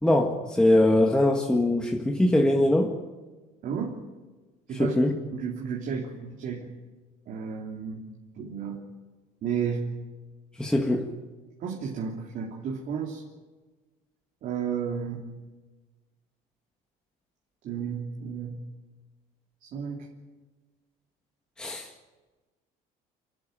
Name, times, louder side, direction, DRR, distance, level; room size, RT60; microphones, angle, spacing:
voice 1, 0.0-2.9 4.7-5.1 10.6-11.1 21.6-21.9, left 1 dB, 5° left, 1 dB, 1.7 m, -22 dB
voice 2, 3.6-4.0 4.7-5.0 5.3-6.7 7.3-8.0 8.4-8.8 9.4-9.9 11.6-13.2 14.4-15.3 17.6-18.6 19.7-20.0, right 6 dB, 55° right, -1 dB, 3.3 m, -32 dB
29.5 x 12.0 x 9.1 m, 1.3 s
cardioid pair, 130°, 17 cm